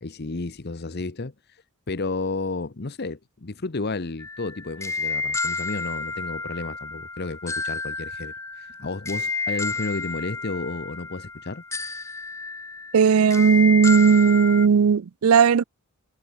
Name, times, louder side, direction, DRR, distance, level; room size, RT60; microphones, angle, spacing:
voice 1, 0.0-1.3 1.9-11.6, left 3 dB, 45° left, 0.9 m, -32 dB
sound 1, 4.2-14.7, left 3 dB, 15° left, 0.5 m, -31 dB
voice 2, 12.9-15.6, right 6 dB, 75° right, 0.4 m, -16 dB
head